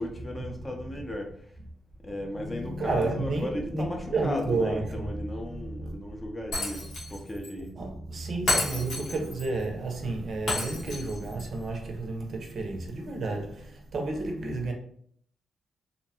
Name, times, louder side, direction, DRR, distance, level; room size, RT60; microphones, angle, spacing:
voice 1, 0.0-1.5 2.0-7.7, left 1 dB, 25° left, 0.5 m, -36 dB
voice 2, 2.3-5.9 7.8-14.7, right 2 dB, 60° right, 0.6 m, -31 dB
Shatter, 6.5-7.2 7.4-7.5 8.5-9.5 10.5-11.5, left 2 dB, 80° left, 0.9 m, -30 dB
2.6 x 2.1 x 2.7 m
cardioid pair, 85°, 0 cm